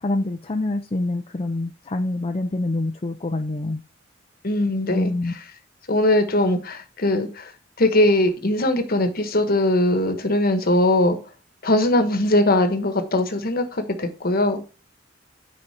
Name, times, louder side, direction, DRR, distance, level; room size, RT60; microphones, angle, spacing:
voice 1, 0.0-3.8 4.9-5.3, left 2 dB, 30° left, 0.5 m, -26 dB
voice 2, 4.4-5.1 5.9-7.5 7.8-11.2 11.6-14.6, left 1 dB, 50° left, 1.2 m, -20 dB
9.8 x 4.3 x 4.2 m
head